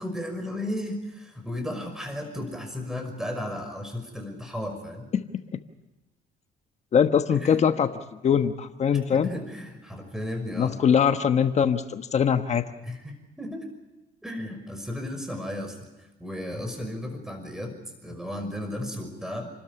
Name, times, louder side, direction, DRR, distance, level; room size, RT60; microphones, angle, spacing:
voice 1, 0.0-5.1 7.4-7.6 8.9-10.8 12.8-13.6 14.2-15.8 16.2-19.5, left 1 dB, 5° right, 5 dB, 5.7 m, -34 dB
voice 2, 6.9-7.9 8.2-9.3 10.6-12.7, left 7 dB, 40° left, 8 dB, 1.2 m, -22 dB
29.0 x 13.0 x 10.0 m, 1.0 s
cardioid pair, 110°, 17 cm